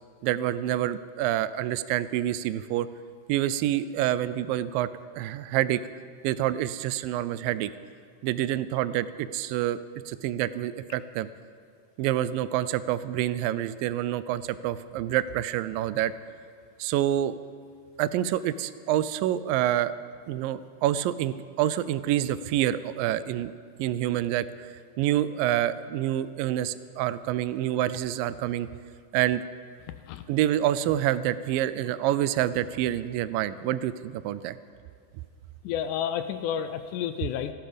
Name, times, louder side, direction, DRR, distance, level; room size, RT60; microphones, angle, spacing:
voice 1, 0.2-2.9 3.3-4.9 5.2-5.8 6.2-7.7 8.2-9.8 10.1-11.3 12.0-16.1 16.8-17.4 18.0-19.9 20.3-23.5 23.8-24.7 25.0-28.7 29.1-29.4 30.3-34.6, right 12 dB, 90° right, 15 dB, 2.3 m, -27 dB
voice 2, 35.6-37.5, left 9 dB, 80° left, 10 dB, 1.9 m, -30 dB
17.0 x 14.0 x 5.1 m, 2.2 s
omnidirectional pair, 3.9 m